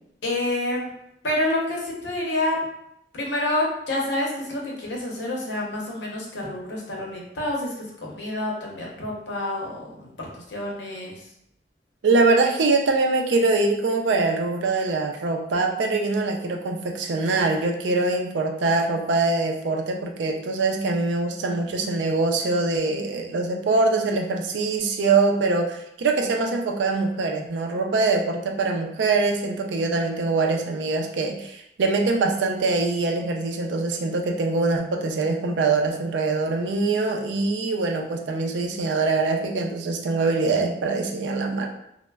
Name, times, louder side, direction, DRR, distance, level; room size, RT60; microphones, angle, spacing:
voice 1, 0.2-0.9 1.2-2.6 3.1-11.2 21.8-22.0, left 1 dB, 80° left, -3 dB, 0.8 m, -28 dB
voice 2, 12.0-41.7, right 3 dB, 80° right, 3 dB, 0.4 m, -23 dB
3.1 x 2.0 x 2.2 m, 0.78 s
head